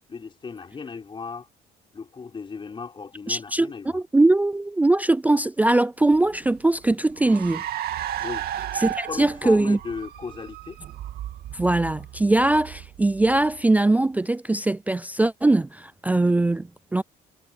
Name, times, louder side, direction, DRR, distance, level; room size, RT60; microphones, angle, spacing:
voice 1, 0.1-1.5 1.9-4.0 8.2-8.5 9.1-10.8, left 5 dB, 30° left, 4.4 m, -36 dB
voice 2, 3.3-7.6 8.8-9.8 11.5-17.0, right 2 dB, 10° right, 0.3 m, -21 dB
Car, 6.1-13.9, right 11 dB, 65° right, 2.3 m, -35 dB
cardioid pair, 110°, 17 cm